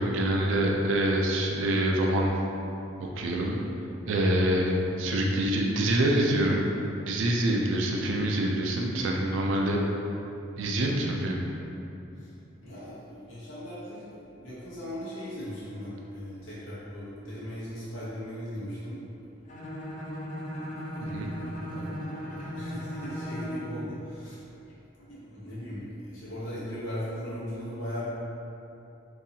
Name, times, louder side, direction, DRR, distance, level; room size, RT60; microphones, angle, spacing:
voice 1, 0.0-2.3 3.2-3.6 4.1-6.7 7.0-9.8 10.6-11.4 21.1-21.3, right 1 dB, 80° right, 0 dB, 0.4 m, -25 dB
voice 2, 5.0-5.4 12.2-12.3 12.6-19.0 20.9-24.4 25.1-28.1, equal, 90° left, -10 dB, 1.0 m, -39 dB
Bowed string instrument, 19.5-23.7, equal, 40° left, 0.5 m, -36 dB
3.9 x 2.6 x 2.7 m, 2.8 s
head